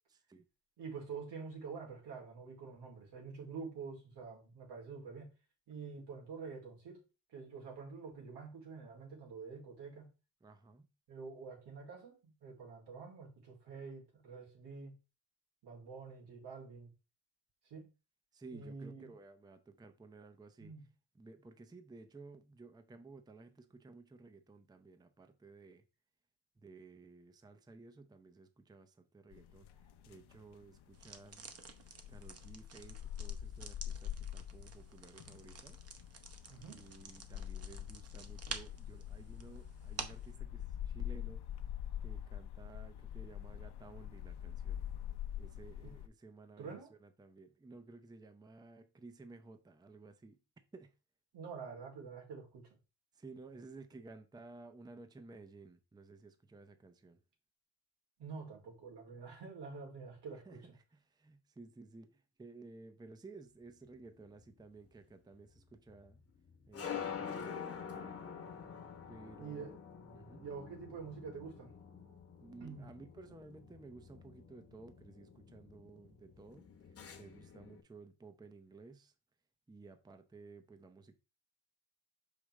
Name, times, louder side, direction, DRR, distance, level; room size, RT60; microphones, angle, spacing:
voice 1, 0.1-0.4 10.4-10.9 18.3-20.7 21.1-25.8 26.6-31.5 32.1-35.8 36.7-41.4 42.0-44.8 45.4-50.4 50.7-50.9 53.1-57.2 60.3-66.2 66.7-68.5 69.1-69.8 70.1-70.5 72.4-79.1 79.7-81.2, right 3 dB, 10° right, 0.5 m, -55 dB
voice 2, 0.8-5.3 5.7-7.0 7.3-10.1 11.1-14.9 15.6-16.9 17.7-17.9 18.5-19.0 20.6-20.8 36.5-36.8 45.8-45.9 46.6-46.9 51.3-52.6 58.2-60.6 69.4-69.7 70.4-71.7 72.6-72.9, right 5 dB, 85° right, 2.9 m, -47 dB
sound 1, 29.3-46.1, left 10 dB, 75° left, 0.7 m, -45 dB
sound 2, 30.9-40.3, right 5 dB, 40° right, 0.8 m, -50 dB
sound 3, 63.8-77.8, left 7 dB, 35° left, 1.0 m, -48 dB
6.0 x 5.0 x 3.2 m
cardioid pair, 135°, 40 cm